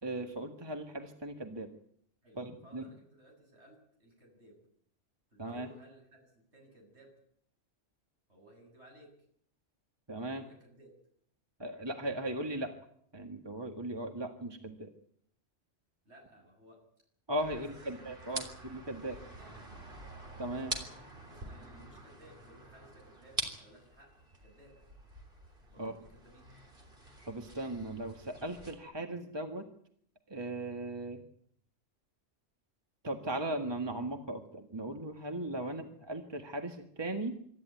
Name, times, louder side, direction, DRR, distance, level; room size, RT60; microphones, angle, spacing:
voice 1, 0.0-1.7 2.4-2.8 5.4-5.7 10.1-10.4 11.6-12.7 13.1-14.9 17.3-19.2 20.4-20.8 25.8-25.9 27.3-29.7 30.3-31.2 33.0-37.3, right 1 dB, 20° right, 4 dB, 1.8 m, -38 dB
voice 2, 2.2-4.6 5.3-7.1 8.3-9.1 10.3-10.9 16.0-16.8 17.4-18.5 18.9-19.5 20.8-21.0 21.3-24.1 24.4-24.7 25.7-26.5 35.6-35.8, right 1 dB, 65° right, 1 dB, 8.4 m, -58 dB
sound 1, 17.4-28.8, right 1 dB, 45° right, 3.7 m, -45 dB
26.0 x 13.5 x 9.2 m, 0.67 s
omnidirectional pair, 1.2 m